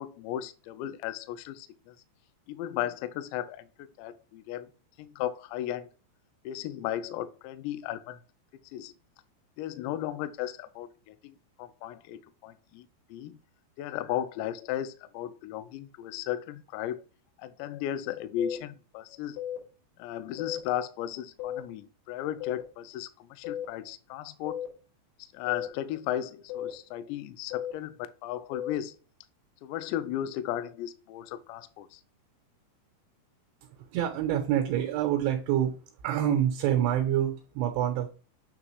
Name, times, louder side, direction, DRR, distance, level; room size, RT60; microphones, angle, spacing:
voice 1, 0.0-2.0 2.5-4.7 5.0-5.9 6.5-8.2 8.7-8.9 9.6-13.4 13.8-17.0 17.4-19.4 20.0-24.6 25.2-29.0 29.6-32.0, left 11 dB, 90° left, 2.6 m, -35 dB
sound 1, 18.4-18.6 19.4-19.6 20.4-20.6 21.4-21.6 22.4-22.6 23.4-23.6 24.5-24.7 25.5-25.7 26.5-26.7 27.5-27.7 28.5-28.7, left 11 dB, 70° left, 4.9 m, -34 dB
voice 2, 33.8-35.8 36.0-38.1, right 10 dB, 75° right, 2.9 m, -27 dB
8.8 x 3.8 x 3.1 m
omnidirectional pair, 5.7 m